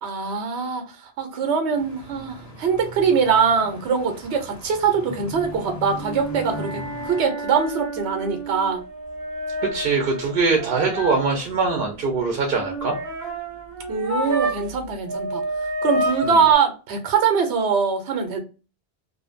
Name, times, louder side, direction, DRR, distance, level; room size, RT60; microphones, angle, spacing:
voice 1, 0.0-8.8 13.9-15.4 15.8-18.4, right 6 dB, 85° right, 0.9 m, -22 dB
sound 1, 1.7-7.2, left 1 dB, 20° left, 0.6 m, -39 dB
sound 2, 5.9-14.8 15.0-16.5, right 1 dB, 20° right, 0.7 m, -30 dB
voice 2, 9.6-13.0 16.2-16.4, right 4 dB, 60° right, 0.7 m, -22 dB
2.5 x 2.1 x 2.4 m
omnidirectional pair, 1.1 m